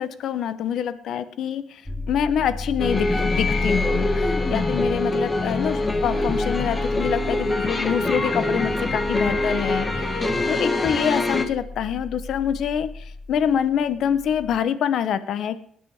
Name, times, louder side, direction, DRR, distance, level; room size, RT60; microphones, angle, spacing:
voice 1, 0.0-1.8 2.1-10.2 10.5-15.6, left 8 dB, 75° left, 13 dB, 1.1 m, -26 dB
sound 1, 1.9-14.6, left 2 dB, 5° left, 3.2 m, -32 dB
sound 2, 2.8-11.4, left 2 dB, 25° left, 2.1 m, -24 dB
18.5 x 9.6 x 4.9 m, 0.64 s
cardioid pair, 90°, 0 cm